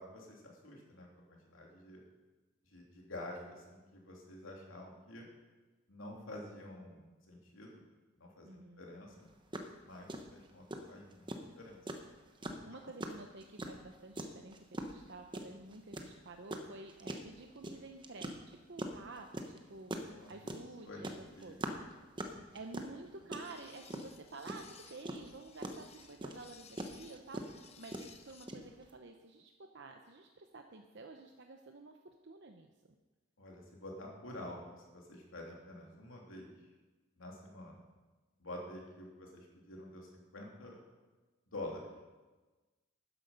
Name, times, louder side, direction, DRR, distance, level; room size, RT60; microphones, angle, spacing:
voice 1, 0.0-2.0 2.7-5.3 5.9-7.9 8.2-9.3 9.8-11.8 12.5-12.6 20.0-20.5 20.8-21.8 22.1-22.5 33.4-36.5 37.2-37.9 38.4-40.8 41.5-41.9, left 1 dB, 85° left, -1 dB, 3.0 m, -49 dB
voice 2, 8.4-8.8 12.4-21.1 21.4-21.6 22.5-32.0 32.2-32.7, right 3 dB, 60° right, 4 dB, 0.8 m, -51 dB
sound 1, 9.2-9.3 9.5-9.7 10.1-28.9, right 1 dB, 25° right, 1.0 m, -42 dB
sound 2, 23.4-28.5, left 6 dB, 30° left, 0.8 m, -59 dB
13.0 x 9.9 x 5.3 m, 1.2 s
head